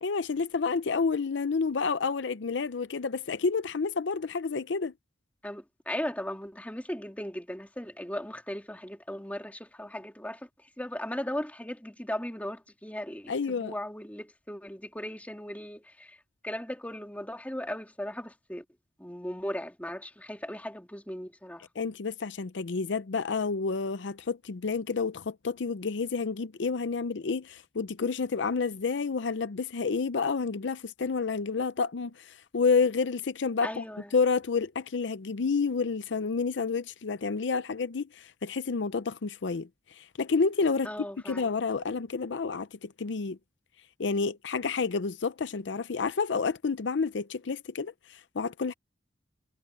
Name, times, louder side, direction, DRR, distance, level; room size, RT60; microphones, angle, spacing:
voice 1, 0.0-4.9 13.3-13.7 21.8-33.8 34.1-40.9 41.3-43.4 44.0-48.7, left 4 dB, 80° left, 0.6 m, -29 dB
voice 2, 5.4-18.6 19.0-21.7 33.6-34.1 40.8-41.5, left 1 dB, 10° left, 3.2 m, -37 dB
head